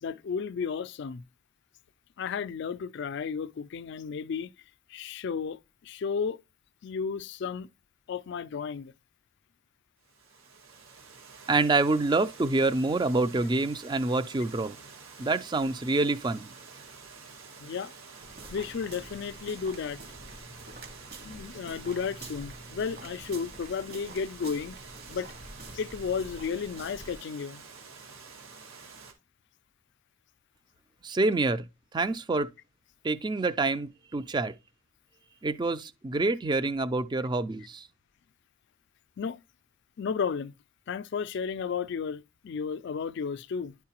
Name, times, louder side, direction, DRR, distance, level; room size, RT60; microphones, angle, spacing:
voice 1, 0.0-1.2 2.2-4.5 4.9-6.4 6.8-7.7 8.1-8.9 17.6-17.9 18.5-20.0 21.2-24.8 25.1-25.3 25.7-27.6 39.2-39.4 40.0-40.5 40.9-43.8, left 6 dB, 55° left, 0.3 m, -33 dB
Water, 10.0-29.1, right 5 dB, 85° right, 1.7 m, -49 dB
voice 2, 11.5-14.8 15.2-16.5 31.0-31.6 31.9-32.5 33.0-34.5 35.4-37.9, right 3 dB, 20° right, 0.4 m, -27 dB
sound 1, 18.2-27.2, right 2 dB, 50° right, 1.6 m, -47 dB
10.5 x 4.6 x 2.9 m
head